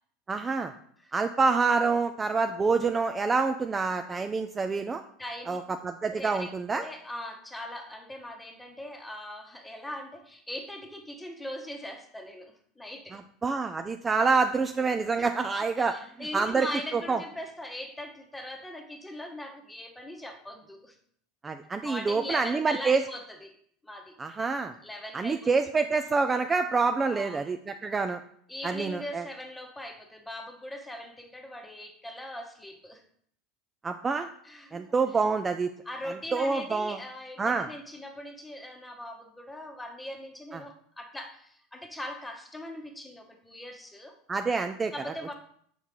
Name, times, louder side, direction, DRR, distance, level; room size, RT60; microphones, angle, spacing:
voice 1, 0.3-0.7 1.1-5.0 5.5-6.8 13.1-16.0 16.3-16.7 16.9-17.2 21.4-23.0 24.2-24.7 25.1-28.2 28.6-29.2 33.8-34.3 34.7-35.7 36.3-37.0 37.4-37.7 40.5-40.6 44.3-44.9, right 4 dB, 20° right, 8 dB, 0.3 m, -27 dB
voice 2, 5.2-5.6 6.1-13.2 15.2-15.3 15.6-21.0 21.8-23.5 23.8-24.1 24.8-25.5 27.1-27.5 28.5-33.0 34.4-34.8 35.8-44.2 44.9-45.3, left 1 dB, 10° left, 4 dB, 1.0 m, -40 dB
5.5 x 4.6 x 3.7 m, 0.64 s
hypercardioid pair, 95°, 0 cm